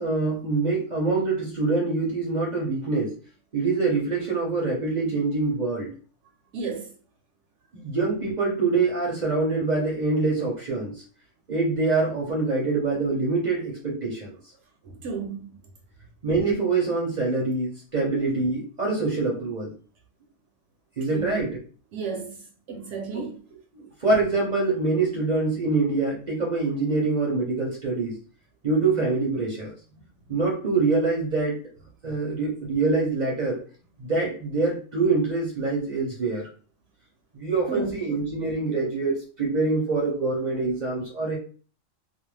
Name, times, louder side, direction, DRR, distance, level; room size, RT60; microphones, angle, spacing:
voice 1, 0.0-3.1 3.5-5.9 7.7-11.0 11.5-14.4 16.2-19.7 21.0-21.5 23.1-23.2 23.7-28.2 28.6-29.7 30.3-31.6 32.0-33.6 34.0-36.5 37.3-41.4, right 3 dB, 45° right, 0.6 m, -25 dB
voice 2, 6.5-6.9 14.8-15.5 21.1-21.4 21.9-22.4 22.7-23.4 30.2-30.3 37.7-38.1, right 4 dB, 75° right, 0.9 m, -33 dB
2.4 x 2.1 x 3.1 m
omnidirectional pair, 1.3 m